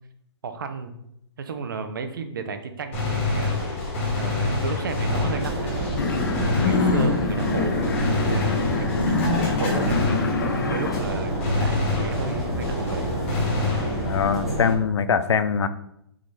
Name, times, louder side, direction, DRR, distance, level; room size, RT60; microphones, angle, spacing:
voice 1, 0.4-1.0 1.4-3.8 4.2-5.7 6.1-7.8 8.3-10.1 10.7-13.1, right 5 dB, 50° right, 8 dB, 0.8 m, -33 dB
Gunshot gunfire, 2.9-10.7 11.0-14.3, left 3 dB, 25° left, 2.4 m, -28 dB
sound 1, 5.1-14.7, right 1 dB, ahead, 1.0 m, -29 dB
sound 2, 6.0-11.0, left 4 dB, 45° left, 0.7 m, -25 dB
voice 2, 14.0-15.7, left 7 dB, 85° left, 12 dB, 0.6 m, -22 dB
8.2 x 3.9 x 3.3 m, 0.79 s
hypercardioid pair, 180°, 14 cm